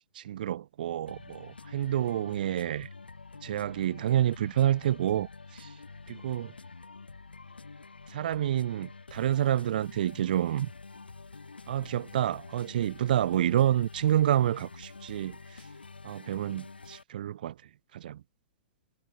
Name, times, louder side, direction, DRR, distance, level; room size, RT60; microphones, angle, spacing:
voice 1, 0.1-2.9 3.4-5.7 6.1-6.5 8.1-10.7 11.7-15.6 16.0-17.5 17.9-18.2, right 11 dB, 60° right, 0.5 m, -28 dB
sound 1, 1.1-17.0, left 4 dB, 85° left, 4.0 m, -48 dB
figure-of-eight pair, 105°, 5 cm